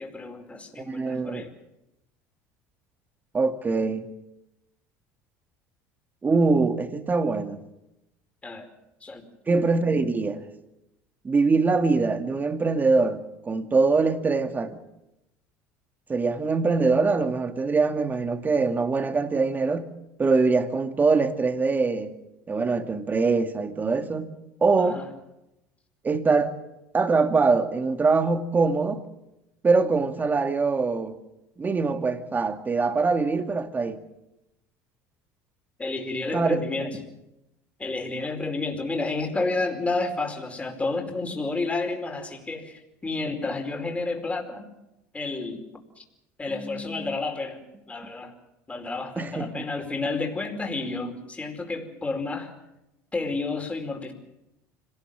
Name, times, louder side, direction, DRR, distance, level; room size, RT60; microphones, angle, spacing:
voice 1, 0.0-1.5 8.4-8.7 9.0-9.2 24.8-25.1 35.8-37.0 37.8-44.7 45.1-45.7 46.0-46.1 46.4-47.6 47.9-48.3 48.7-52.5 53.1-54.1, left 3 dB, 15° left, 4.8 m, -30 dB
voice 2, 0.8-1.5 3.3-4.1 6.2-7.6 9.5-10.4 11.2-14.8 16.1-19.9 20.2-22.1 22.5-24.3 24.6-25.0 26.0-26.5 26.9-29.0 29.6-31.2 31.6-34.0 36.3-36.6 46.5-47.2 49.2-49.5, right 4 dB, 25° right, 2.3 m, -23 dB
25.5 x 18.5 x 7.5 m
supercardioid pair, 95°, 7 cm